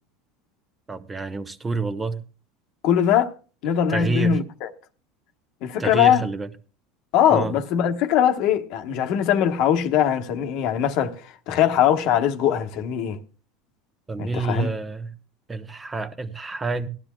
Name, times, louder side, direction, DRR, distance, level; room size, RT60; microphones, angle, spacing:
voice 1, 0.9-2.2 3.9-4.4 5.8-6.5 7.3-7.5 14.1-15.1 15.5-16.9, right 3 dB, 15° right, 0.9 m, -28 dB
voice 2, 2.8-3.3 3.6-4.7 5.6-6.2 7.1-13.2 14.2-14.7, left 9 dB, 60° left, 1.1 m, -21 dB
18.0 x 12.0 x 2.3 m
supercardioid pair, 125°, 0 cm